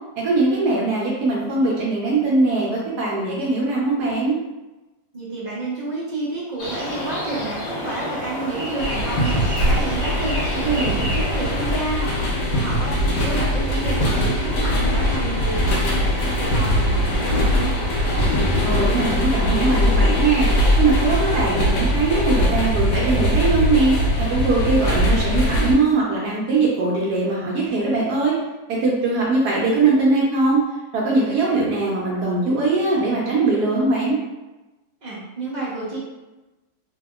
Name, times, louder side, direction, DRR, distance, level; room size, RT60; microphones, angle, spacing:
voice 1, 0.2-4.4 10.6-11.0 18.6-20.5 20.8-28.3 28.7-30.6 30.9-34.2, right 3 dB, 75° right, -4 dB, 1.1 m, -21 dB
voice 2, 5.1-17.8 35.0-36.0, right 2 dB, 35° right, -7 dB, 0.7 m, -30 dB
sound 1, 6.6-11.8, left 1 dB, 45° left, 0.9 m, -29 dB
sound 2, 8.8-25.7, equal, 80° left, 1.2 m, -21 dB
2.8 x 2.7 x 2.3 m, 1.1 s
omnidirectional pair, 1.8 m